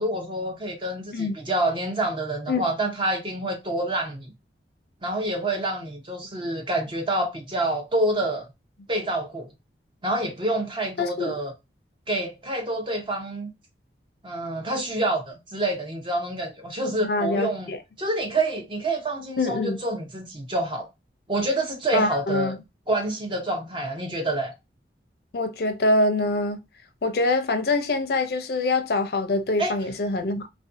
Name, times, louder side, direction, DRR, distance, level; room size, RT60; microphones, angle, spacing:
voice 1, 0.0-4.3 5.0-8.5 8.9-9.5 10.0-11.5 12.1-13.5 14.2-17.7 18.0-20.9 21.3-22.5 22.9-24.5 29.6-29.7, right 1 dB, 30° right, 0.6 m, -27 dB
voice 2, 11.0-11.4 17.0-17.8 19.4-19.8 21.9-22.6 25.3-26.6 27.0-30.5, left 2 dB, 60° left, 0.5 m, -24 dB
2.5 x 2.2 x 2.5 m
head